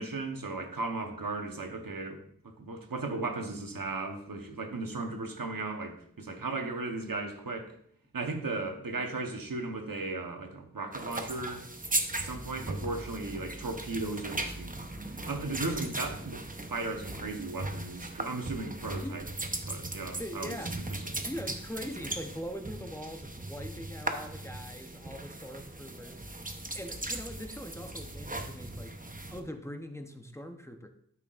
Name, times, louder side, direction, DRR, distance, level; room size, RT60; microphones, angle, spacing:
voice 1, 0.0-7.7 8.1-11.6 12.2-14.7 15.1-16.4 16.7-19.2 19.7-20.6 21.0-21.2, right 3 dB, 90° right, 4 dB, 1.1 m, -36 dB
sound 1, 10.9-29.4, right 2 dB, 25° right, 0.9 m, -38 dB
voice 2, 13.2-13.6 19.0-19.2 20.2-20.8 21.2-29.0 29.3-30.9, equal, 10° left, 5 dB, 0.9 m, -42 dB
12.5 x 5.9 x 2.5 m, 0.66 s
wide cardioid pair, 45°, 33 cm